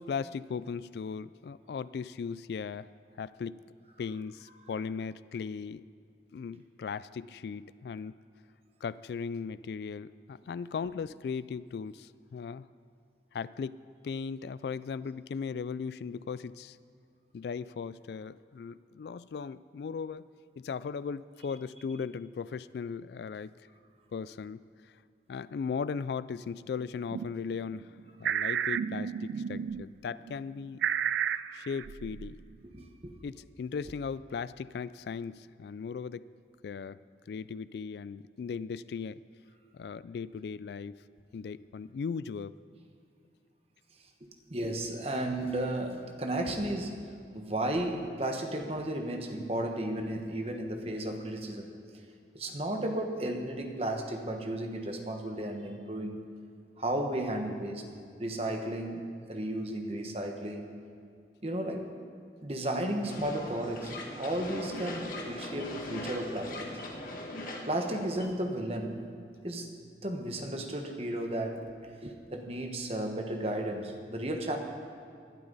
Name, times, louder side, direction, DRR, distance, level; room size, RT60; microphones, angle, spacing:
voice 1, 0.0-2.9 3.2-3.6 4.0-5.8 6.3-8.2 8.8-12.7 13.3-13.8 14.0-16.8 17.3-20.3 20.6-23.5 24.1-25.0 25.3-30.9 31.5-32.4 33.2-36.3 36.6-39.2 39.7-41.0 41.3-42.5, left 5 dB, 70° left, 17 dB, 0.3 m, -37 dB
sound 1, 27.1-27.3 27.7-29.8 30.3-32.3, right 8 dB, 85° right, 0.3 m, -32 dB
voice 2, 32.6-33.1 44.5-47.1 47.3-51.7 52.3-56.2 56.8-57.9 58.2-60.7 61.4-61.9 62.4-66.8 67.7-69.1 69.4-69.7 70.0-71.7 72.0-74.6, right 1 dB, 35° right, 4 dB, 1.3 m, -34 dB
sound 2, 63.0-68.3, left 1 dB, 50° left, 1.6 m, -40 dB
20.5 x 12.0 x 4.1 m, 2.3 s
head